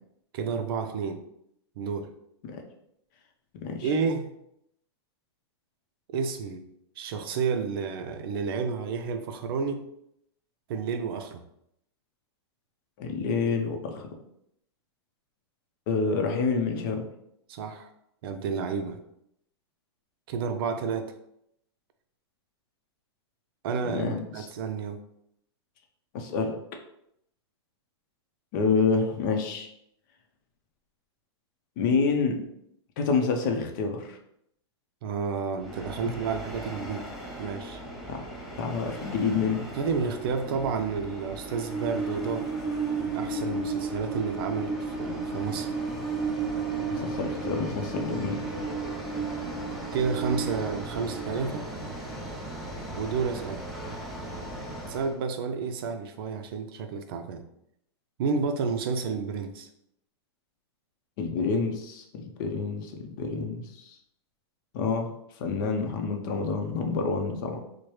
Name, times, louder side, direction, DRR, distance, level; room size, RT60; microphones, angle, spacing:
voice 1, 0.3-1.2 1.8-2.1 3.8-4.2 6.1-6.7 7.0-9.8 10.7-11.4 17.5-17.9 18.2-19.0 20.3-21.1 23.6-25.0 35.0-37.0 37.4-37.8 39.8-42.5 43.0-45.7 49.9-51.7 53.0-53.6 54.9-57.4 58.2-59.7, right 5 dB, 55° right, 7 dB, 0.5 m, -30 dB
voice 2, 3.5-3.9 13.0-14.2 15.9-17.1 23.8-24.5 26.1-26.6 28.5-29.7 31.8-32.4 33.0-34.2 36.0-36.2 38.1-38.2 38.6-39.7 46.9-48.4 61.2-64.0 64.7-67.6, left 4 dB, 45° left, 3 dB, 0.6 m, -28 dB
Train, 35.6-55.1, right 3 dB, ahead, 0.6 m, -34 dB
4.6 x 2.1 x 3.1 m, 0.75 s
hypercardioid pair, 150°, 14 cm